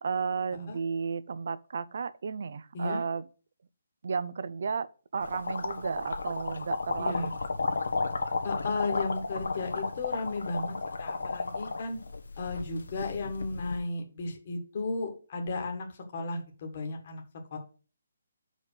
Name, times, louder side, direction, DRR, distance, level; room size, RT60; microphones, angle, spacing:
voice 1, 0.0-3.3 4.0-7.3, right 5 dB, 45° right, 0.5 m, -33 dB
sound 1, 5.2-13.8, left 3 dB, 85° left, 1.4 m, -33 dB
voice 2, 7.0-7.3 8.4-12.0 12.4-17.2 17.5-17.6, left 3 dB, 30° left, 1.5 m, -34 dB
5.5 x 5.1 x 6.6 m
hypercardioid pair, 175°, 0 cm